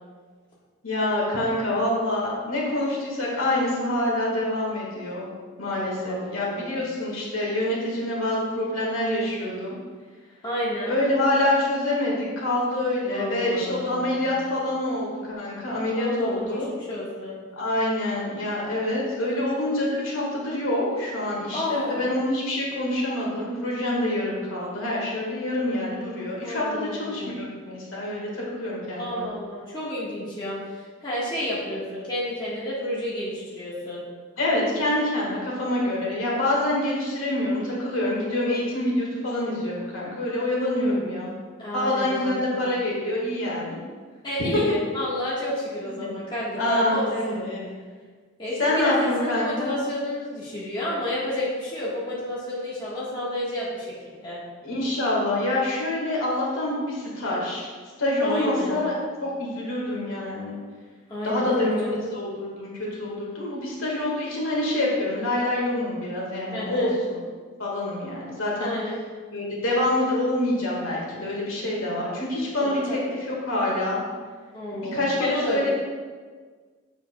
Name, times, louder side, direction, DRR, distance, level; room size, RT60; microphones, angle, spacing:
voice 1, 0.8-5.3 5.6-9.7 10.9-16.7 17.6-29.3 34.4-41.3 41.7-43.8 44.5-44.6 45.9-46.1 46.6-47.7 48.6-49.8 54.6-57.7 58.0-58.9 59.2-60.6 61.2-61.8 62.1-67.2 67.6-68.7 69.3-74.0 74.9-75.7, left 1 dB, 75° left, -4 dB, 1.7 m, -26 dB
voice 2, 6.0-6.8 10.4-11.0 13.1-14.2 15.9-17.5 21.5-22.0 26.4-27.6 29.0-34.0 40.5-41.2 41.6-42.7 44.2-47.5 48.4-54.0 54.2-54.4 58.2-58.8 61.1-62.2 66.5-66.9 68.6-69.0 72.6-73.0 74.5-75.7, left 1 dB, 20° left, -8 dB, 1.4 m, -31 dB
7.1 x 7.0 x 2.3 m, 1.5 s
head